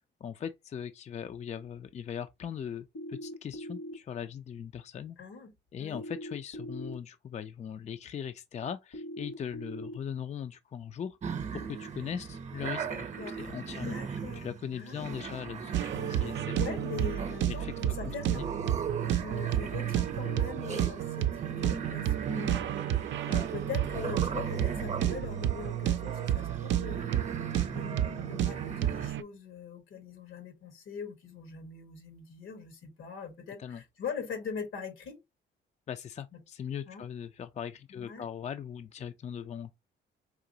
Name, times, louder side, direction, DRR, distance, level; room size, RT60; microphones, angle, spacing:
voice 1, 0.2-5.2 5.7-13.1 13.4-16.6 17.5-17.7 18.0-18.5 33.6-33.8 35.9-39.7, left 8 dB, 35° left, 0.4 m, -40 dB
sound 1, 2.9-3.9 5.9-6.9 8.9-9.9, equal, 60° left, 1.2 m, -41 dB
voice 2, 5.2-5.5 5.8-6.0 12.9-14.5 14.7-15.4 16.2-18.5 19.0-27.1 27.6-35.2 36.9-37.0 37.9-38.3, left 6 dB, 80° left, 1.5 m, -42 dB
sound 2, 11.2-29.1, right 6 dB, 35° right, 0.7 m, -39 dB
sound 3, 15.7-29.2, right 11 dB, 70° right, 0.5 m, -31 dB
4.9 x 2.9 x 2.7 m
cardioid pair, 90°, 20 cm